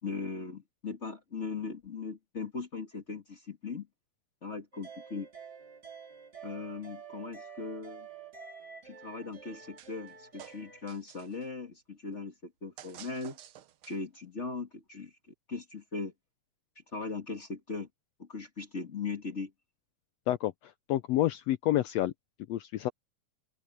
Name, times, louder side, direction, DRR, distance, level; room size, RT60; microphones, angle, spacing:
voice 1, 0.0-3.9 4.4-5.3 6.4-8.1 8.8-13.4 13.9-15.1 15.5-16.1 16.7-17.9 18.2-19.5, left 4 dB, 30° left, 1.7 m, -39 dB
sound 1, 4.7-10.8, right 6 dB, 30° right, 4.4 m, -49 dB
sound 2, 9.8-10.1 10.4-11.5 12.8-14.2, right 11 dB, 90° right, 1.1 m, -51 dB
voice 2, 20.3-22.1 22.5-22.9, left 14 dB, 75° left, 1.5 m, -29 dB
open air
omnidirectional pair, 3.6 m